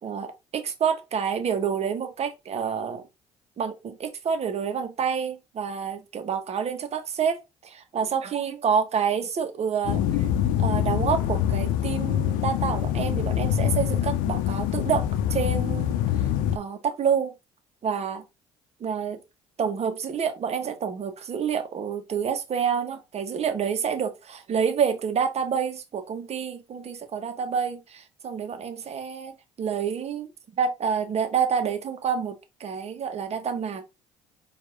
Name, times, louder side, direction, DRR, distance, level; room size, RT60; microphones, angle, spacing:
voice 1, 0.0-3.0 3.6-10.3 10.6-16.0 16.5-17.3 17.8-18.2 18.8-19.2 19.6-30.3 30.6-33.8, right 7 dB, 50° right, 1.2 m, -28 dB
sound 1, 9.8-16.6, left 11 dB, 75° left, 0.6 m, -25 dB
4.7 x 2.8 x 4.0 m
hypercardioid pair, 65°, 14 cm